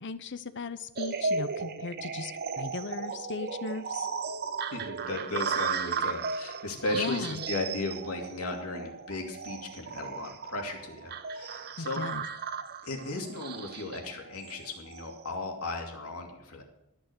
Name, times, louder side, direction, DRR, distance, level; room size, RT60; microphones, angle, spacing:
voice 1, 0.0-4.1 6.9-7.4 11.8-12.3, left 4 dB, 55° left, 12 dB, 0.8 m, -37 dB
sound 1, 1.0-15.2, right 5 dB, 45° right, 0.7 m, -35 dB
voice 2, 4.7-12.0 12.8-16.6, left 2 dB, 75° left, 2 dB, 2.7 m, -36 dB
13.0 x 6.3 x 7.9 m, 0.86 s
head